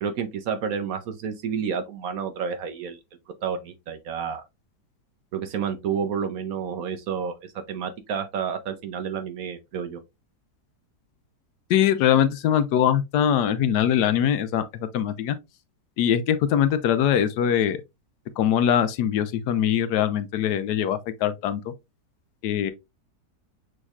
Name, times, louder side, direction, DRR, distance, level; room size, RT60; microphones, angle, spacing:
voice 1, 0.0-3.0 3.4-4.4 5.3-10.0, right 7 dB, 65° right, 1.0 m, -30 dB
voice 2, 11.7-15.4 16.0-17.8 18.4-21.6 22.4-22.7, left 9 dB, 75° left, 1.2 m, -22 dB
6.3 x 3.1 x 2.3 m
omnidirectional pair, 1.8 m